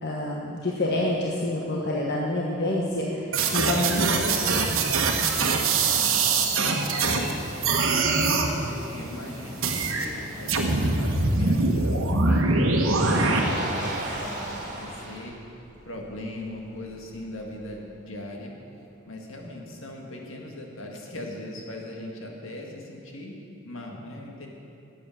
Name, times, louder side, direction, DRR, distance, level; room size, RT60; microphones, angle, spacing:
voice 1, 0.0-3.2 3.5-4.6, left 1 dB, 55° left, -3 dB, 1.3 m, -27 dB
Motor vehicle (road), 2.7-17.8, right 1 dB, 40° right, 2.3 m, -40 dB
sound 1, 3.3-7.3 7.6-8.5 9.6-10.1 10.5-13.4, right 3 dB, 75° right, 1.2 m, -23 dB
Water, 4.9-10.5, equal, 15° left, 3.0 m, -43 dB
voice 2, 5.8-6.2 6.6-7.1 7.9-8.2 8.7-12.5 12.8-15.4 15.9-18.5 19.1-23.3 23.6-24.5, left 1 dB, 70° left, 0 dB, 1.9 m, -40 dB
13.0 x 8.6 x 6.5 m, 2.9 s
head